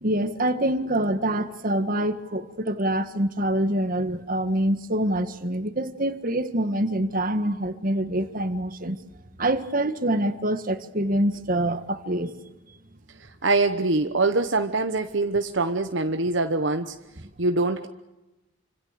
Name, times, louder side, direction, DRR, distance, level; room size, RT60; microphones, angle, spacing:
voice 1, 0.0-9.0 9.4-12.3, right 1 dB, 45° right, 1.7 m, -25 dB
voice 2, 13.2-16.9 17.4-17.9, right 3 dB, 65° right, 1.0 m, -24 dB
28.5 x 26.0 x 6.8 m
head